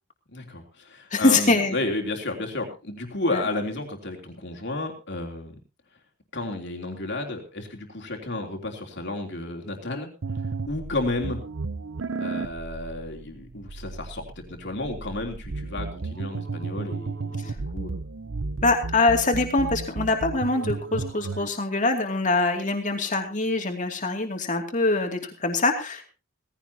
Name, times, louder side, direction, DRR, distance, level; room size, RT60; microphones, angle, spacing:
voice 1, 0.3-5.6 6.3-10.1 10.7-11.4 12.2-18.0, left 2 dB, 60° left, 2 dB, 3.3 m, -32 dB
voice 2, 1.1-1.7 3.3-3.4 17.4-17.6 18.6-26.1, left 3 dB, 40° left, 4 dB, 2.7 m, -24 dB
sound 1, 10.2-21.5, right 3 dB, 70° right, 0.7 m, -34 dB
18.0 x 16.0 x 2.9 m, 0.31 s
head